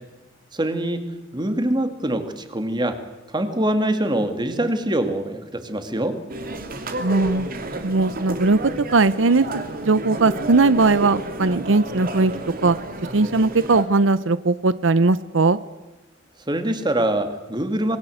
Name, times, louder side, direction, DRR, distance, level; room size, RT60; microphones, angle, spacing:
voice 1, 0.5-3.0 3.3-6.2 16.5-18.0, right 1 dB, 25° right, 8 dB, 2.3 m, -24 dB
sound 1, 6.3-13.8, right 2 dB, 50° right, 2.7 m, -31 dB
voice 2, 7.0-7.5 7.8-8.6 8.9-12.3 12.6-12.8 13.1-15.6, right 3 dB, 85° right, 16 dB, 0.7 m, -19 dB
26.5 x 21.5 x 7.9 m, 1.1 s
head